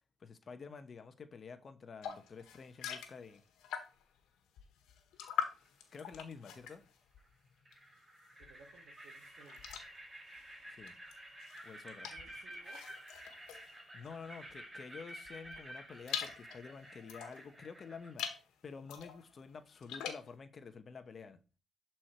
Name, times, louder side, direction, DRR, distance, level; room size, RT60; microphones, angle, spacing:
voice 1, 0.2-3.4 5.9-6.8 10.7-10.9 11.6-12.1 13.9-21.4, left 5 dB, 45° left, 1.0 m, -50 dB
sound 1, 2.0-4.2 4.6-8.0 8.3-14.6 15.1-17.5 18.0-18.5 18.8-20.3, left 9 dB, 90° left, 1.5 m, -44 dB
sound 2, 5.2-5.7 7.2-7.3 7.6-18.1, right 1 dB, 20° right, 4.2 m, -52 dB
voice 2, 8.4-9.9 12.0-12.8, right 4 dB, 65° right, 1.9 m, -61 dB
11.5 x 4.5 x 4.5 m
cardioid pair, 90°, 0 cm